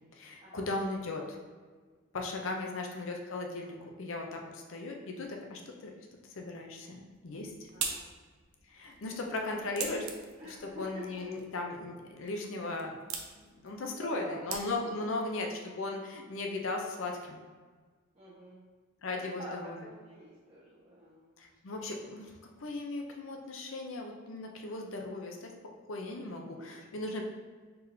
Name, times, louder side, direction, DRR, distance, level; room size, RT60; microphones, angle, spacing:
voice 1, 0.1-1.3 2.1-5.9 6.3-7.5 8.7-10.0 10.4-12.9 13.4-17.4 19.0-19.7 21.4-22.3 22.6-25.5 25.9-27.2, left 2 dB, 65° left, 2 dB, 0.6 m, -37 dB
sound 1, 7.1-15.1, right 6 dB, 80° right, 0.5 m, -43 dB
voice 2, 7.7-8.0 9.1-9.3 9.6-10.1 10.4-11.1 13.7-14.6 18.1-18.6 19.1-21.4 21.7-21.9, equal, 30° right, -12 dB, 1.1 m, -48 dB
4.4 x 3.6 x 2.7 m, 1.4 s
head